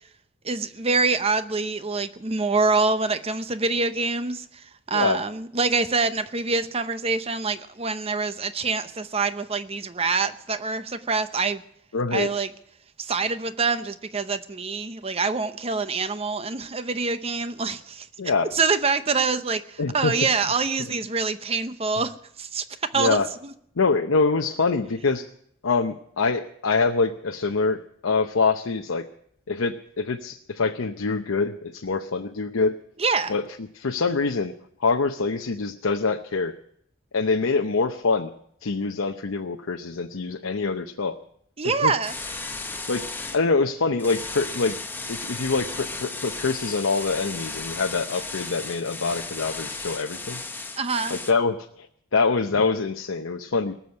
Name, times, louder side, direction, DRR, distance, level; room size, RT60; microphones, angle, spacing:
voice 1, 0.4-4.4 4.9-11.6 12.1-12.5 13.0-18.1 18.5-23.2 33.0-33.3 41.6-42.1 50.8-51.2, right 4 dB, 30° right, 12 dB, 0.7 m, -25 dB
voice 2, 11.9-12.4 18.2-18.5 19.8-20.1 22.9-23.3 23.8-25.3 25.6-29.1 29.5-32.8 33.3-33.5 33.7-34.5 34.8-36.5 37.1-38.3 38.6-41.1 41.6-41.9 42.9-43.1 43.3-44.8 45.1-50.4 51.1-51.9 52.1-53.7, left 4 dB, 90° left, 4 dB, 0.8 m, -25 dB
sound 1, 42.0-43.4 44.0-51.3, left 3 dB, 10° left, 0.9 m, -35 dB
19.0 x 7.2 x 9.5 m, 0.69 s
head